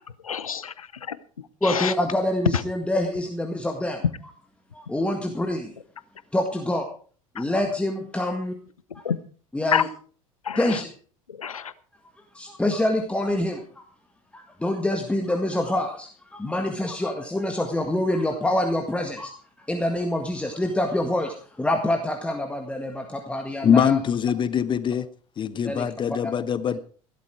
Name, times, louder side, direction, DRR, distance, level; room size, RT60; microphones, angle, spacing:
voice 1, 0.2-1.2 1.6-1.9 7.4-7.5 9.0-9.2 9.7-9.8 10.4-10.8 11.4-11.7, left 7 dB, 75° left, 18 dB, 0.8 m, -27 dB
voice 2, 1.6-4.0 4.7-5.7 6.3-6.9 7.4-8.6 8.9-9.0 9.5-9.9 10.6-10.9 12.3-13.8 14.3-19.3 19.6-24.0 25.6-25.9 26.2-26.3, left 1 dB, 5° left, 4 dB, 1.8 m, -26 dB
voice 3, 23.6-25.1 25.4-26.8, left 8 dB, 25° left, 17 dB, 0.8 m, -22 dB
15.5 x 12.5 x 4.7 m, 0.42 s
figure-of-eight pair, 75°, 18 cm